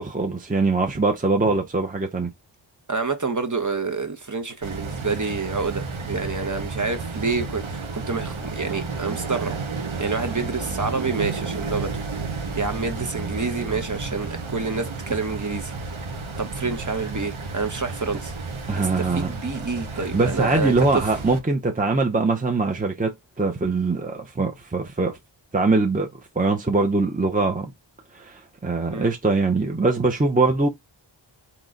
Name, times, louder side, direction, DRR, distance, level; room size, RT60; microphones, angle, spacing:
voice 1, 0.0-2.3 18.7-19.3 20.0-25.2 25.5-26.1 26.4-27.7 28.1-30.7, right 3 dB, 15° right, 0.7 m, -22 dB
voice 2, 2.9-9.5 10.0-11.9 12.6-15.7 16.4-18.3 18.8-21.0 28.9-29.1, right 4 dB, 40° right, 1.1 m, -28 dB
sound 1, 4.6-21.4, right 4 dB, 75° right, 1.1 m, -32 dB
3.9 x 3.0 x 3.8 m
wide cardioid pair, 40°, 48 cm